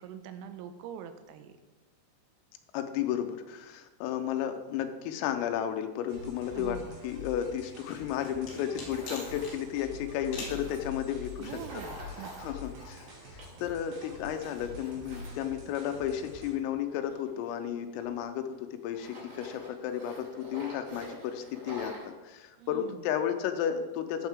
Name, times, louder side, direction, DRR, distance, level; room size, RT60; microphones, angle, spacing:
voice 1, 0.0-1.6 6.6-7.0 11.4-12.5 22.6-23.0, right 9 dB, 80° right, 9 dB, 3.3 m, -44 dB
voice 2, 2.7-6.8 7.0-11.6 12.4-24.3, left 9 dB, 85° left, 7 dB, 3.4 m, -33 dB
sound 1, 6.1-16.5, left 3 dB, 60° right, 3.9 m, -46 dB
sound 2, 7.6-9.6 10.3-10.6, left 3 dB, 65° left, 4.9 m, -42 dB
Tools, 8.9-9.5 10.4-13.7 14.0-16.3 16.9-18.5 18.9-22.1, equal, 40° right, 4.4 m, -47 dB
14.0 x 7.4 x 3.6 m, 1.2 s
omnidirectional pair, 6.0 m